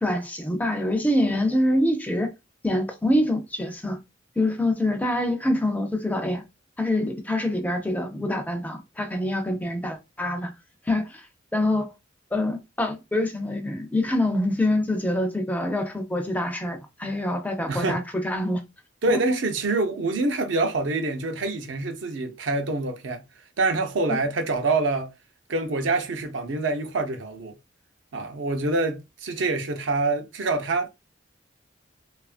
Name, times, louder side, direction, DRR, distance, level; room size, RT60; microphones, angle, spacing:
voice 1, 0.0-2.3 2.6-4.0 4.4-6.4 6.8-10.5 10.9-11.3 11.5-11.9 12.3-18.6 19.1-19.2 24.1-24.2, left 1 dB, 10° left, 0.4 m, -25 dB
voice 2, 17.7-18.0 19.0-23.2 23.6-25.1 25.5-27.6 28.1-30.9, right 3 dB, 70° right, 0.6 m, -26 dB
2.7 x 2.4 x 2.4 m
head